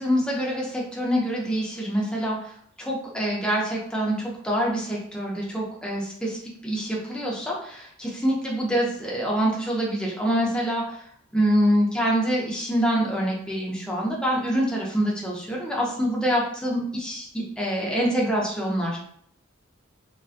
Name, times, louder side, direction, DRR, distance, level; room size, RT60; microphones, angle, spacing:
voice 1, 0.0-11.1 11.3-19.0, equal, 5° left, -4 dB, 0.5 m, -25 dB
2.5 x 2.2 x 2.4 m, 0.67 s
head